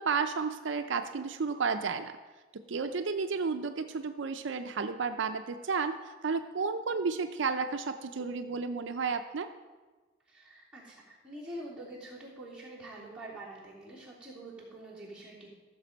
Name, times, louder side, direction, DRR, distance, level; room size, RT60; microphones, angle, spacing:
voice 1, 0.0-2.1 2.5-6.0 6.2-9.5, right 5 dB, 70° right, 8 dB, 0.5 m, -32 dB
voice 2, 10.3-15.5, right 1 dB, 5° right, -7 dB, 3.1 m, -46 dB
14.5 x 6.8 x 5.2 m, 1.3 s
head